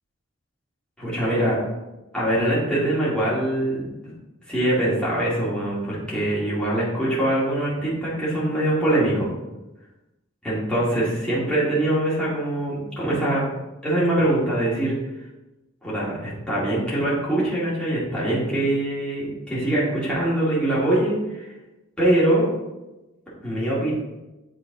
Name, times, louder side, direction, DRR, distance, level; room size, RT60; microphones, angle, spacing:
voice 1, 1.0-1.6 2.1-3.8 4.5-9.3 10.4-13.4 13.8-14.9 15.8-21.5 22.0-22.5 23.4-23.9, right 1 dB, 5° left, -9 dB, 2.0 m, -23 dB
7.8 x 3.8 x 3.9 m, 1.0 s
head